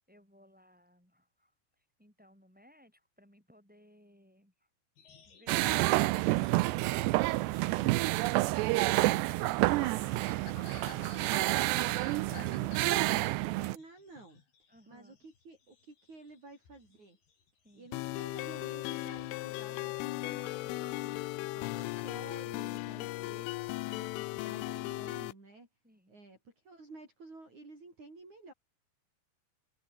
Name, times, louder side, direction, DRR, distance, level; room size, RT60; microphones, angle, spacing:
voice 1, 0.1-1.5 1.8-4.7 5.3-9.6 10.1-11.5 12.1-12.6 14.7-15.2 17.6-17.9 25.8-26.2, equal, ahead, 6.7 m, -62 dB
sound 1, 5.0-15.4 15.7-16.4 16.7-18.2 18.6-18.8 19.2-19.4 19.9-22.0, left 6 dB, 55° left, 6.5 m, -53 dB
sound 2, 5.5-13.8, right 20 dB, 90° right, 2.5 m, -29 dB
voice 2, 11.6-14.4 14.9-17.2 17.7-23.6 23.8-25.7 26.1-28.5, right 3 dB, 35° right, 9.0 m, -52 dB
sound 3, 17.9-25.3, left 21 dB, 85° left, 3.2 m, -37 dB
omnidirectional pair, 5.6 m